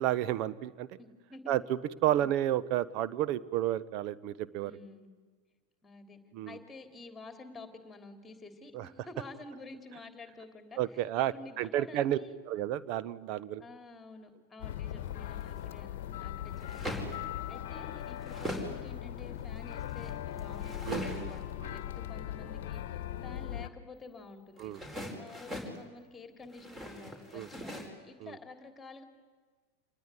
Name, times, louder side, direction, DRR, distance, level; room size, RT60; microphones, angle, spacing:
voice 1, 0.0-1.0 1.5-4.7 6.3-6.6 8.7-8.9 10.8-12.2 12.5-13.6 20.9-21.3 21.6-21.7 24.6-24.8 27.3-27.5 28.2-28.4, right 12 dB, 40° right, 15 dB, 1.0 m, -31 dB
voice 2, 1.0-1.5 2.1-2.3 4.6-5.1 5.8-6.2 6.4-12.4 13.6-17.1 17.5-24.7 25.1-29.0, left 3 dB, 10° left, 7 dB, 3.4 m, -50 dB
sound 1, 14.6-23.7, left 11 dB, 50° left, 1.2 m, -39 dB
sound 2, 15.1-15.6 16.5-17.3 17.8-18.8 19.2-21.5 24.6-25.8 26.4-27.9, equal, 15° right, 4.9 m, -41 dB
27.0 x 20.0 x 9.8 m, 1.4 s
figure-of-eight pair, 90°, 0 cm